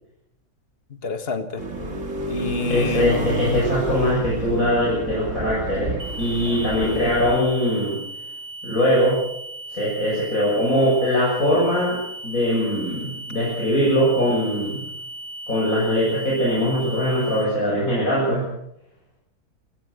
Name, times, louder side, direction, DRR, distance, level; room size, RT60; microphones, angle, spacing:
voice 1, 1.0-1.6 2.3-3.4, left 5 dB, 45° left, 9 dB, 1.9 m, -27 dB
sound 1, 1.6-7.4, right 3 dB, 55° right, 2.8 m, -30 dB
voice 2, 2.7-8.0 8.6-9.2 9.7-12.0 12.2-14.8 15.5-18.4, equal, 70° left, -5 dB, 7.8 m, -21 dB
sound 2, 6.0-17.4, right 1 dB, 35° right, 4.3 m, -36 dB
28.0 x 16.0 x 6.7 m, 0.77 s
omnidirectional pair, 1.5 m